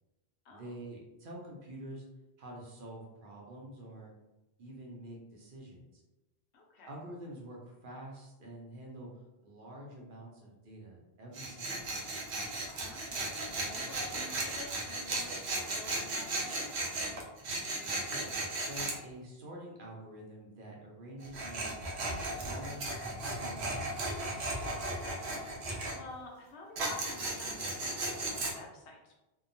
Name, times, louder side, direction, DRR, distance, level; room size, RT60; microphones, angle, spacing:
voice 1, 0.5-2.0 2.4-4.1 4.6-6.0 6.8-11.8 18.0-18.3 18.6-22.9 23.3-24.1, right 1 dB, 60° right, -2 dB, 0.7 m, -47 dB
voice 2, 6.5-6.9 12.8-16.7 24.8-25.6 25.9-29.2, left 2 dB, 85° left, -1 dB, 1.0 m, -50 dB
Tools, 11.3-19.0 21.2-26.0 26.8-28.5, right 2 dB, 90° right, 0.9 m, -36 dB
2.8 x 2.2 x 2.5 m, 1.0 s
omnidirectional pair, 1.1 m